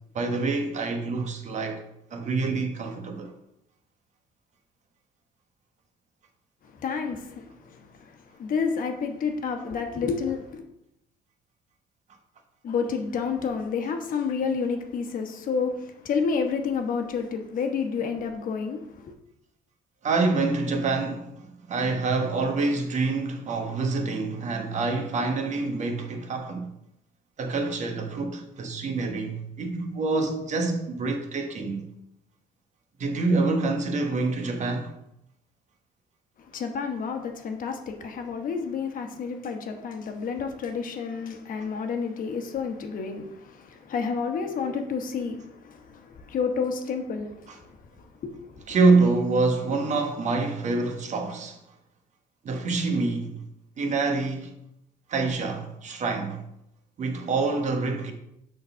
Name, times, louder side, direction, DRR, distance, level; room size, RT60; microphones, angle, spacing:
voice 1, 0.1-1.8 2.1-3.3 20.0-21.4 21.7-26.7 27.4-31.8 33.0-34.9 47.5-47.6 48.7-51.6 52.4-53.4 53.8-54.5 55.1-56.4 57.0-58.1, right 3 dB, 45° right, 1.2 m, -26 dB
voice 2, 6.8-7.8 8.4-10.6 12.6-15.7 16.0-18.8 19.0-19.1 36.5-45.4 45.6-47.6 48.2-48.5, left 5 dB, 55° left, 1.1 m, -29 dB
6.6 x 3.9 x 5.6 m
cardioid pair, 110°, 17 cm